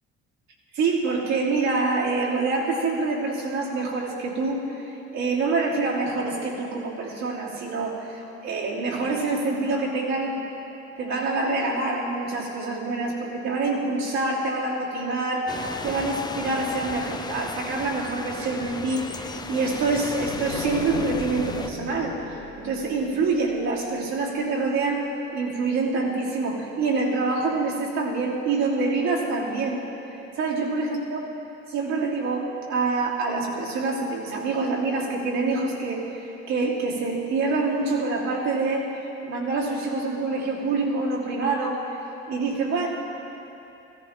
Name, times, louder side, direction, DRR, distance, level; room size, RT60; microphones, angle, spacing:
voice 1, 0.7-10.4 11.0-22.2 22.6-29.8 30.3-31.2 31.7-38.9 39.2-42.0 42.3-42.9, right 3 dB, 65° right, -5 dB, 3.0 m, -26 dB
sound 1, 15.5-21.7, left 3 dB, 15° left, 0.5 m, -35 dB
sound 2, 20.3-24.0, left 4 dB, 65° left, 1.4 m, -36 dB
16.5 x 14.5 x 3.7 m, 2.9 s
cardioid pair, 95°, 29 cm